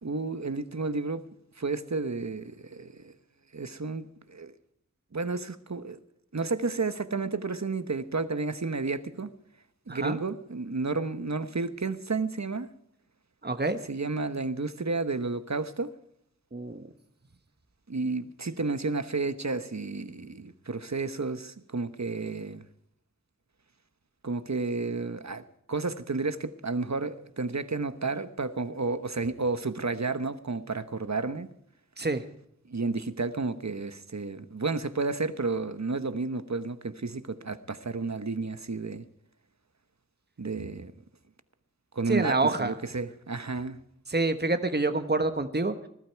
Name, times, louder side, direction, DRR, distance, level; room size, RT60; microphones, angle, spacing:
voice 1, 0.0-1.3 1.6-3.1 3.5-4.5 5.1-6.0 6.3-9.3 9.9-12.7 13.8-15.9 17.9-22.6 24.2-31.5 32.7-39.0 40.4-40.9 41.9-43.8, right 3 dB, 65° right, 1.1 m, -31 dB
voice 2, 13.4-13.8 16.5-16.9 32.0-32.2 42.1-42.7 44.1-45.7, right 3 dB, 35° right, 1.2 m, -27 dB
20.0 x 12.5 x 4.6 m
wide cardioid pair, 45°, 30 cm